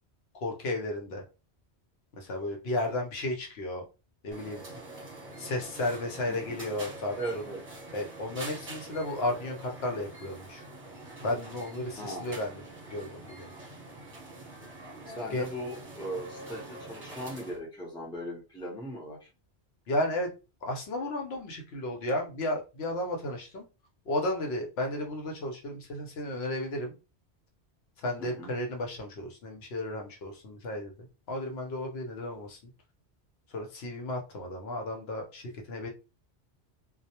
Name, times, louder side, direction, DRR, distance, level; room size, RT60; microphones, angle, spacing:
voice 1, 0.4-1.2 2.2-3.8 4.2-4.6 5.4-7.4 7.9-10.6 11.2-12.6 12.9-13.5 15.3-15.4 19.9-20.3 20.6-23.7 24.1-26.9 28.0-30.9 31.3-32.6 33.5-35.9, left 1 dB, 70° left, 2 dB, 0.9 m, -33 dB
sound 1, 4.3-17.6, right 2 dB, 30° right, 1.0 m, -45 dB
voice 2, 7.2-7.6 12.0-12.3 15.1-19.3 28.2-28.5, right 1 dB, 5° left, -2 dB, 0.6 m, -38 dB
2.2 x 2.0 x 2.8 m, 0.29 s
omnidirectional pair, 1.1 m